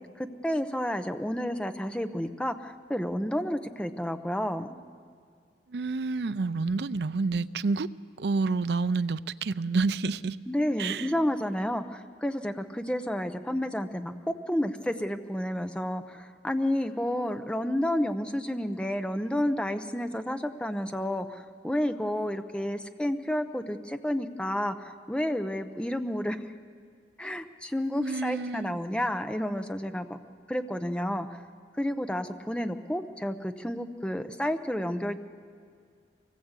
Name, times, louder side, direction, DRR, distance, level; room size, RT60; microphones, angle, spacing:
voice 1, 0.2-4.8 10.5-26.4 27.2-30.2 30.5-31.3 31.8-35.2, equal, 5° left, 0.8 m, -30 dB
voice 2, 5.7-7.9 8.2-10.4 10.8-11.1 28.0-28.8, right 4 dB, 65° right, 0.5 m, -29 dB
24.0 x 18.5 x 8.2 m
head